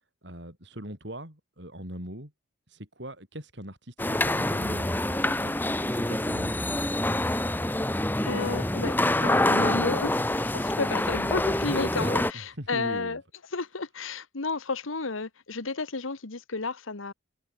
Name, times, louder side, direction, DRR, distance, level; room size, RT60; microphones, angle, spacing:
voice 1, 0.2-2.3 2.7-6.8 12.3-13.2, right 1 dB, 60° right, 6.8 m, -41 dB
sound 1, 4.0-12.3, left 1 dB, 10° left, 1.1 m, -26 dB
voice 2, 8.2-13.2 13.5-17.1, left 3 dB, 80° left, 1.4 m, -32 dB
head